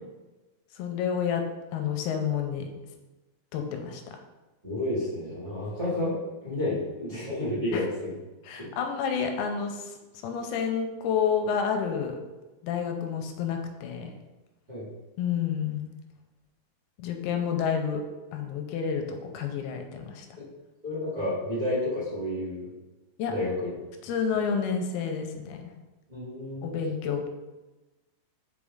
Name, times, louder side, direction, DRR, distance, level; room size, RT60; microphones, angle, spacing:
voice 1, 0.8-1.4 1.7-2.7 3.5-4.0 7.7-7.9 8.5-10.0 10.2-12.2 12.6-14.1 15.2-15.9 17.0-18.0 18.3-20.4 23.2-23.3 24.0-25.6 26.6-27.3, left 7 dB, 85° left, 4 dB, 2.5 m, -29 dB
voice 2, 4.6-8.1 8.6-8.7 14.7-14.9 20.4-20.5 20.8-22.7 23.3-23.7 26.1-26.7, left 1 dB, 35° right, -10 dB, 0.7 m, -30 dB
6.2 x 4.9 x 3.6 m, 1.1 s
omnidirectional pair, 4.6 m